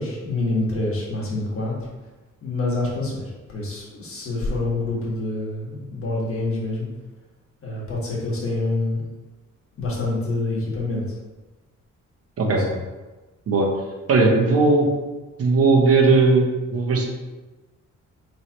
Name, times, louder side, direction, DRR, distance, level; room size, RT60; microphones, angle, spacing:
voice 1, 0.0-1.7 2.4-6.9 7.6-9.0 9.8-11.0 12.4-12.7, left 2 dB, 45° left, -4 dB, 1.5 m, -26 dB
voice 2, 14.1-14.9 15.4-17.0, right 3 dB, 50° right, 1 dB, 0.9 m, -17 dB
4.7 x 3.3 x 2.8 m, 1.2 s
cardioid pair, 120°, 30 cm